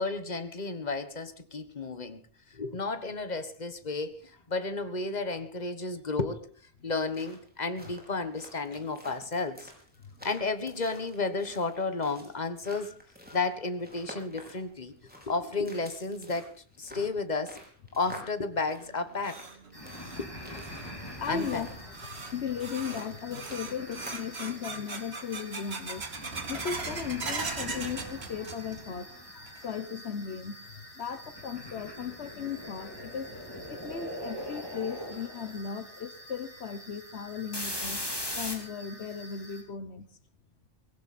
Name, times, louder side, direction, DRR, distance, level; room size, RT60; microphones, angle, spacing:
voice 1, 0.0-2.2 2.5-6.5 6.8-9.7 10.2-12.9 13.3-16.5 16.8-17.6 18.0-19.4 20.2-20.6 21.3-21.6, left 3 dB, 40° left, 10 dB, 1.5 m, -32 dB
sound 1, 6.9-24.3, equal, 10° right, 5.1 m, -50 dB
sound 2, 18.8-29.0 29.3-29.9 30.3-30.4 31.1-31.2 32.8-32.9 33.4-33.5 33.9-34.0 34.5-34.6 35.1-35.5, right 4 dB, 75° right, 2.0 m, -40 dB
sound 3, 19.7-39.6, left 1 dB, 20° left, 3.6 m, -42 dB
voice 2, 20.8-21.7 22.1-26.1 26.5-33.4 33.7-38.0 38.4-40.1, left 7 dB, 80° left, 12 dB, 1.3 m, -37 dB
19.5 x 16.5 x 4.3 m, 0.43 s
omnidirectional pair, 1.1 m